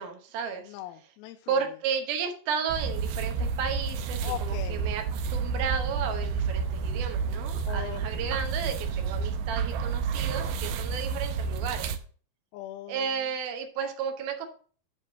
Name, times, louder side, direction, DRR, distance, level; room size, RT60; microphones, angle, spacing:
voice 1, 0.0-0.7 1.5-11.9 12.9-14.5, right 6 dB, 70° right, 5 dB, 2.6 m, -33 dB
voice 2, 0.7-1.5 4.2-4.9 7.6-8.3 12.5-13.1, left 12 dB, 85° left, 7 dB, 2.7 m, -40 dB
sound 1, 2.7-12.0, right 5 dB, 85° right, 2.1 m, -30 dB
10.0 x 3.7 x 6.1 m, 0.43 s
omnidirectional pair, 5.0 m